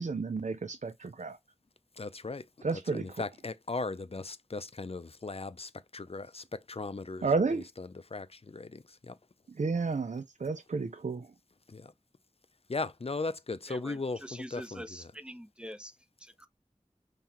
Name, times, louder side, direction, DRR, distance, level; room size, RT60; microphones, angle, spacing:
voice 1, 0.0-1.4 2.6-3.2 7.2-7.7 9.6-11.3, right 4 dB, 85° right, 0.5 m, -31 dB
voice 2, 2.0-2.4 2.9-7.3 7.8-9.1 11.7-11.8 12.7-14.8, left 3 dB, 55° left, 0.5 m, -37 dB
voice 3, 13.7-16.5, equal, 10° right, 0.8 m, -45 dB
5.6 x 3.1 x 2.9 m
wide cardioid pair, 45°, 12 cm